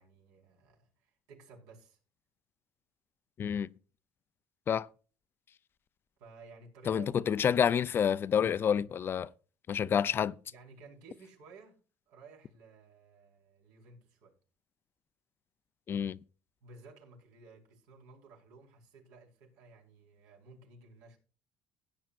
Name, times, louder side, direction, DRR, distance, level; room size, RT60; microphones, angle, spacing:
voice 1, 0.0-2.0 6.2-7.7 10.5-11.8 12.1-14.4 16.6-21.2, right 4 dB, 80° right, 4.9 m, -55 dB
voice 2, 3.4-3.7 4.7-4.9 6.9-9.3 9.7-10.3 15.9-16.2, left 8 dB, 40° left, 0.5 m, -28 dB
16.5 x 9.2 x 2.5 m
supercardioid pair, 100°, 6 cm